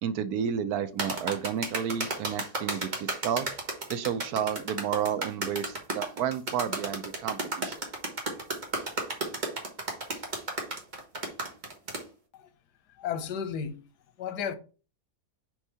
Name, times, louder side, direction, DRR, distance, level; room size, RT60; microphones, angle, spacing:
voice 1, 0.0-3.5 3.9-7.7, right 8 dB, 75° right, 1.2 m, -31 dB
sound 1, 1.0-12.0, right 2 dB, 30° right, 1.4 m, -33 dB
voice 2, 13.0-13.8 14.2-14.5, left 7 dB, 90° left, 1.4 m, -33 dB
4.8 x 4.4 x 5.5 m
omnidirectional pair, 1.7 m